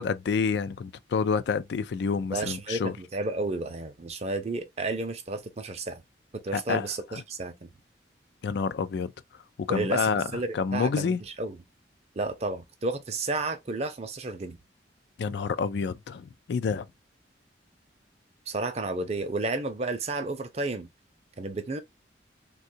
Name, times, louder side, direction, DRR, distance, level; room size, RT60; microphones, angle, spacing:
voice 1, 0.0-2.9 6.5-6.9 7.1-7.2 8.4-9.1 9.7-10.3 10.5-11.2 15.2-16.8, left 5 dB, 70° left, 0.3 m, -28 dB
voice 2, 2.3-6.0 6.4-7.7 9.7-11.6 12.2-14.6 18.5-20.9 21.4-21.8, right 2 dB, 35° right, 0.5 m, -32 dB
3.6 x 2.3 x 2.6 m
head